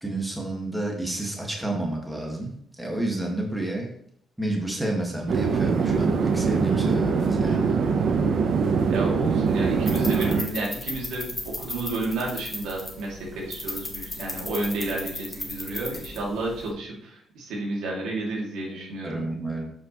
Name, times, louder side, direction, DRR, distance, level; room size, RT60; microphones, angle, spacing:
voice 1, 0.0-3.9 4.4-7.7 19.0-19.6, right 1 dB, 5° right, 0 dB, 1.8 m, -30 dB
sound 1, 5.3-10.4, right 5 dB, 60° right, 0.8 m, -23 dB
voice 2, 8.9-19.2, right 2 dB, 85° right, -2 dB, 2.4 m, -31 dB
sound 2, 9.5-16.7, left 2 dB, 15° left, 1.8 m, -36 dB
7.3 x 5.8 x 3.1 m, 0.67 s
cardioid pair, 90°, 0 cm